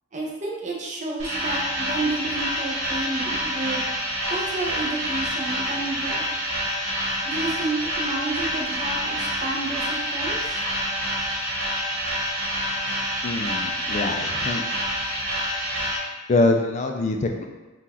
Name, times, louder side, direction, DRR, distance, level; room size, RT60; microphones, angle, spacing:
voice 1, 0.1-3.8 4.3-6.2 7.2-10.6, right 2 dB, 35° right, -2 dB, 0.7 m, -30 dB
sound 1, 1.2-16.0, equal, 65° right, 1.5 m, -27 dB
voice 2, 13.2-14.6 16.3-17.5, left 2 dB, 35° left, 3 dB, 0.3 m, -24 dB
3.8 x 2.4 x 4.2 m, 1.2 s
head